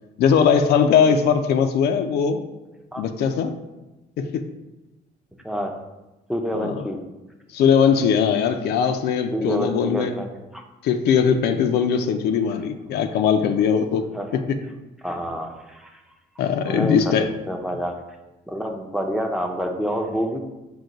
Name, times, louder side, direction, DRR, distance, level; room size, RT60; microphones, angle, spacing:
voice 1, 0.2-2.4 3.0-3.5 4.2-4.4 6.5-6.8 7.5-10.1 10.8-14.1 14.3-14.4 16.4-17.3, left 7 dB, 70° left, 8 dB, 0.4 m, -20 dB
voice 2, 6.3-7.0 9.3-10.6 14.1-14.3 15.0-16.0 16.6-18.0 18.5-20.4, equal, 5° right, 3 dB, 0.5 m, -28 dB
6.3 x 2.2 x 3.8 m, 1.0 s
cardioid pair, 110°, 17 cm